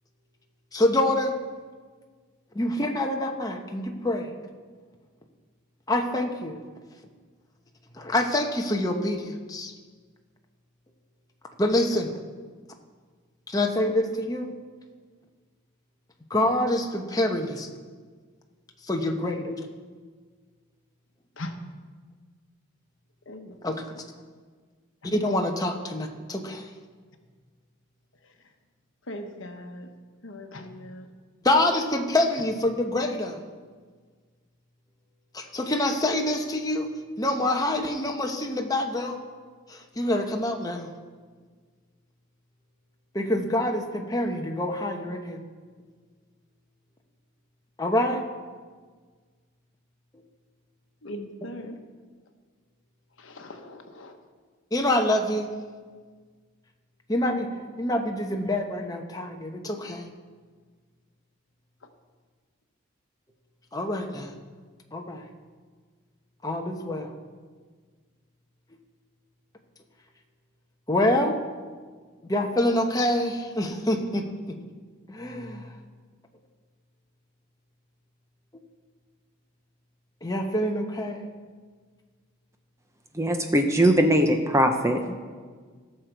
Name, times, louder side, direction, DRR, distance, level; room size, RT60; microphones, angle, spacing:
voice 1, 0.7-1.3 2.5-4.3 5.9-6.6 7.9-9.7 11.6-12.1 13.5-14.6 16.3-17.7 18.9-19.6 23.6-23.8 25.0-26.7 31.4-33.4 35.3-36.9 37.2-39.2 39.7-40.9 43.1-45.4 47.8-48.2 51.4-51.5 54.7-55.5 57.1-57.5 57.8-60.0 63.7-64.3 64.9-65.2 66.4-67.1 70.9-71.4 72.3-74.6 75.1-75.7 80.2-81.3, left 1 dB, 15° left, 2 dB, 0.9 m, -26 dB
voice 2, 23.3-23.6 23.9-24.1 25.0-25.1 29.1-29.9 30.2-31.1 51.0-51.8 53.2-54.2, left 1 dB, 65° left, 5 dB, 1.1 m, -40 dB
voice 3, 83.2-85.1, right 1 dB, 15° right, 5 dB, 0.7 m, -21 dB
17.0 x 6.7 x 4.6 m, 1.5 s
head